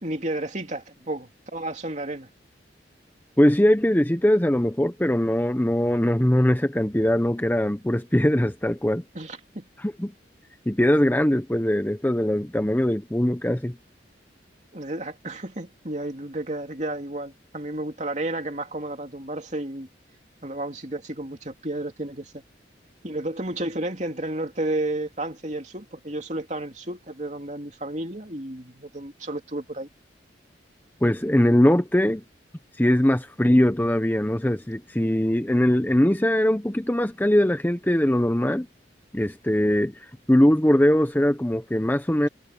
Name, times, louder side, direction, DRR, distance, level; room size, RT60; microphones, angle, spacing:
voice 1, 0.0-2.3 9.1-9.7 14.7-19.9 20.4-22.4 23.0-29.9, right 1 dB, 40° right, 2.9 m, -32 dB
voice 2, 3.4-9.0 9.8-10.1 10.7-13.8 31.0-32.2 32.8-38.7 39.1-42.3, left 1 dB, 10° left, 0.7 m, -21 dB
head